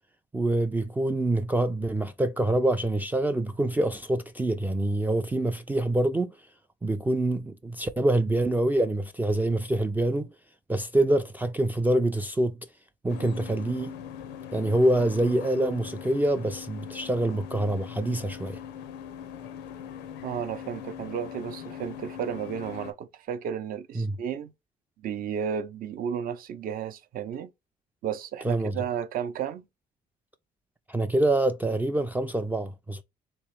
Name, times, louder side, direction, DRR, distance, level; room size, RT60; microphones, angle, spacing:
voice 1, 0.3-6.3 6.8-10.3 10.7-12.6 13.0-13.9 14.5-18.6 24.0-24.1 28.4-28.8 30.9-33.0, right 1 dB, 10° right, 0.3 m, -25 dB
sound 1, 13.1-22.9, left 8 dB, 85° left, 0.6 m, -41 dB
voice 2, 20.2-24.5 25.0-27.5 28.0-29.6, right 8 dB, 60° right, 0.6 m, -33 dB
3.3 x 3.0 x 3.1 m
cardioid pair, 110°, 17 cm